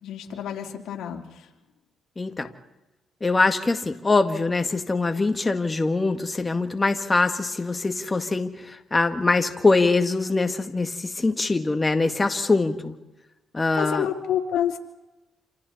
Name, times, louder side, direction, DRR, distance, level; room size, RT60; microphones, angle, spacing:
voice 1, 0.0-1.2 13.7-14.8, left 10 dB, 75° left, 1 dB, 3.5 m, -28 dB
voice 2, 2.2-2.5 3.2-12.9 13.5-14.1, left 3 dB, 20° left, 7 dB, 1.9 m, -23 dB
28.5 x 27.5 x 4.3 m, 1.0 s
cardioid pair, 90°, 0 cm